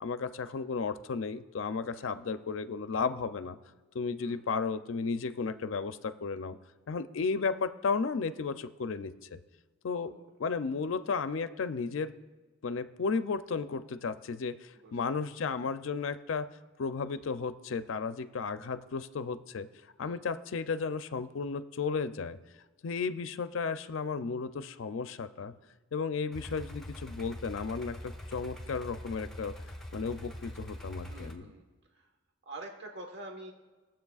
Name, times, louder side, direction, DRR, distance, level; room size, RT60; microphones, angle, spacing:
voice 1, 0.0-3.6 3.9-6.6 6.9-9.4 9.8-10.1 10.4-12.1 12.6-16.5 16.8-19.7 20.0-22.4 22.8-25.5 25.9-29.5 29.9-31.4, left 5 dB, 65° left, 11 dB, 0.4 m, -34 dB
voice 2, 1.9-2.3 4.2-4.4 10.0-10.3 14.8-15.3 20.0-20.3 30.9-31.7 32.4-33.5, right 2 dB, 55° right, 2 dB, 1.3 m, -47 dB
sound 1, 26.3-31.3, left 1 dB, ahead, 1.1 m, -43 dB
21.0 x 7.4 x 2.4 m, 1.3 s
head